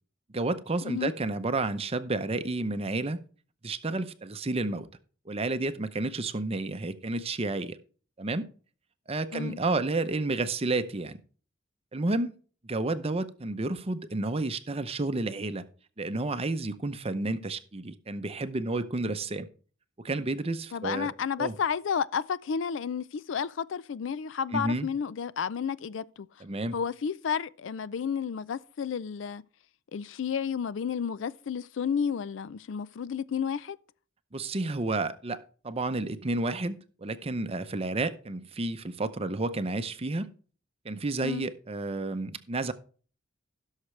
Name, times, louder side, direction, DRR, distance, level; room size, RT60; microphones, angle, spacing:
voice 1, 0.3-3.2 3.6-4.9 5.3-7.8 8.2-8.5 9.1-11.2 11.9-12.3 12.6-15.6 16.0-19.5 20.0-21.1 21.4-21.5 24.5-24.9 26.4-26.8 34.3-40.3 40.8-42.7, right 2 dB, 30° right, 0.6 m, -31 dB
voice 2, 20.7-26.3 26.7-29.4 29.9-33.8 41.2-41.5, left 7 dB, 65° left, 0.4 m, -31 dB
16.0 x 6.5 x 3.2 m
head